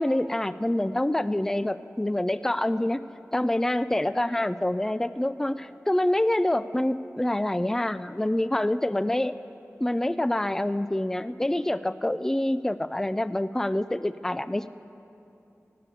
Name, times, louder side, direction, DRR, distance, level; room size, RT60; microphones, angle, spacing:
voice 1, 0.0-3.0 3.3-9.3 9.8-14.7, left 1 dB, 10° left, 14 dB, 0.3 m, -26 dB
18.0 x 6.7 x 8.4 m, 2.8 s
wide cardioid pair, 70°, 5 cm